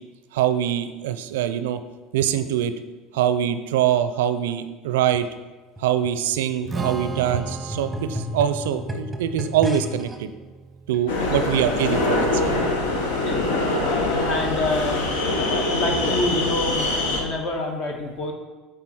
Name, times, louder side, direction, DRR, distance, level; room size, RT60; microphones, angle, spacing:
voice 1, 0.3-1.8 2.1-2.7 3.1-5.3 5.8-10.3 10.9-12.6, right 10 dB, 75° right, 11 dB, 0.4 m, -23 dB
sound 1, 5.8-10.2 10.9-11.0, left 1 dB, ahead, 1.0 m, -34 dB
Strum, 6.7-12.9, right 3 dB, 20° right, 0.6 m, -37 dB
sound 2, 11.1-17.2, left 2 dB, 80° left, 1.0 m, -23 dB
voice 2, 11.1-11.5 13.2-13.5 13.8-15.1 15.4-18.3, left 2 dB, 50° left, 3 dB, 1.2 m, -27 dB
8.7 x 3.8 x 4.3 m, 1.3 s
hypercardioid pair, 80°, 0 cm